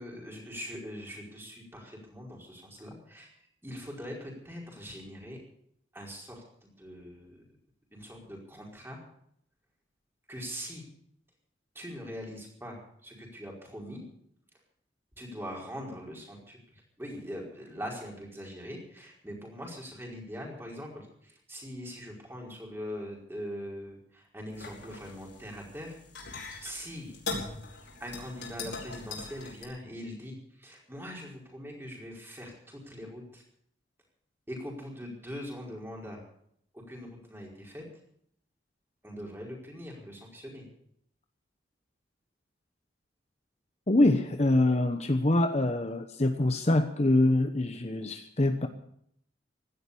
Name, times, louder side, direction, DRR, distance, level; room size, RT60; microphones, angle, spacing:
voice 1, 0.0-5.4 5.9-7.4 7.9-9.0 10.3-10.8 11.7-14.0 15.2-26.0 26.2-27.2 28.0-33.4 34.5-36.2 36.7-37.9 39.0-40.7, equal, 15° right, -1 dB, 4.8 m, -42 dB
sound 1, 24.5-29.6, left 3 dB, 65° left, 5.2 m, -41 dB
voice 2, 43.9-48.7, left 1 dB, 35° left, 7 dB, 1.0 m, -25 dB
17.0 x 12.0 x 7.0 m, 0.69 s
head